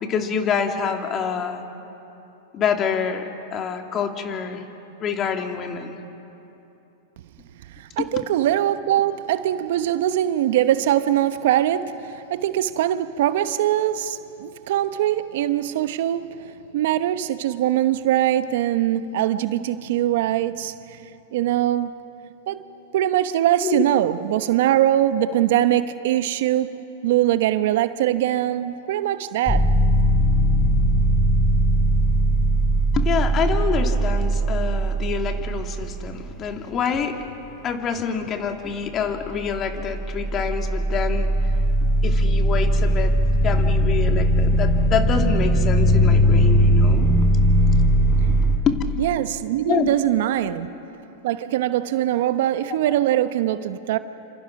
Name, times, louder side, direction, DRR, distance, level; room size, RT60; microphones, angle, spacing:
voice 1, 0.0-1.7 2.5-4.6 5.0-6.0 8.0-8.1 23.6-23.9 32.9-37.2 37.6-41.3 42.0-43.1 43.4-47.1 48.4-48.8 49.7-49.9, left 7 dB, 30° left, 2.6 m, -26 dB
voice 2, 7.8-16.3 16.7-21.0 21.3-21.9 22.5-22.6 22.9-29.7 49.0-50.7 51.2-54.0, right 12 dB, 65° right, 1.0 m, -22 dB
sound 1, 29.5-36.7 39.2-48.6, right 1 dB, 10° left, 4.0 m, -19 dB
29.0 x 26.5 x 6.0 m
hypercardioid pair, 115°, 0 cm